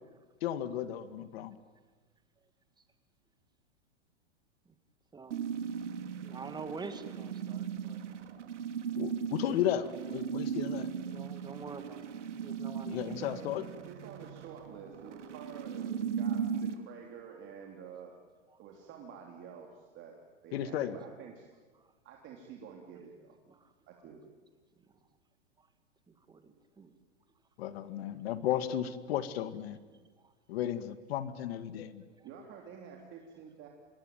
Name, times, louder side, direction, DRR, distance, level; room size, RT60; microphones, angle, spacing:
voice 1, 0.4-1.6 9.0-10.9 12.9-13.6 20.5-21.0 27.6-29.8 30.5-32.0, left 11 dB, 60° left, 13 dB, 2.0 m, -34 dB
sound 1, 5.3-16.7, right 7 dB, 80° right, 2.8 m, -37 dB
voice 2, 6.2-8.0 11.1-12.1 12.4-13.0 23.5-23.6 26.3-26.9, right 4 dB, 10° right, 9 dB, 2.2 m, -45 dB
voice 3, 13.1-18.1 18.6-20.2 20.4-21.5 22.0-23.4 23.9-24.2 32.2-33.7, right 7 dB, 35° right, 1 dB, 3.4 m, -49 dB
26.5 x 21.5 x 9.3 m, 1.3 s
hypercardioid pair, 130°, 35 cm